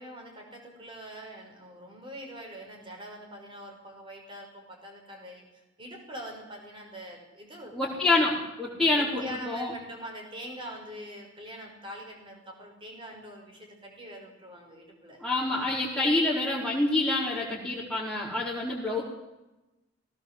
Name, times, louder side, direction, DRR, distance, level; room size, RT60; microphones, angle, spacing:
voice 1, 0.0-5.5 5.8-8.3 8.9-15.2, equal, 30° right, 1 dB, 5.7 m, -43 dB
voice 2, 7.7-9.7 15.2-19.0, left 2 dB, ahead, -9 dB, 4.7 m, -27 dB
20.5 x 18.0 x 7.6 m, 1.0 s
head